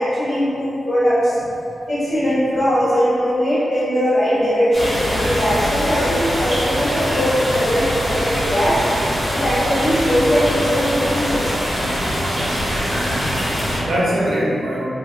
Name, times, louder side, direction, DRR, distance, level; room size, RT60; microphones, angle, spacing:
voice 1, 0.0-1.4 1.9-8.8 9.3-11.6, equal, 70° left, -13 dB, 1.5 m, -20 dB
sound 1, 4.7-13.8, equal, 15° left, 0.8 m, -22 dB
voice 2, 13.1-14.9, equal, 75° right, -6 dB, 0.6 m, -24 dB
2.9 x 2.3 x 2.2 m, 2.6 s
wide cardioid pair, 105°, 0 cm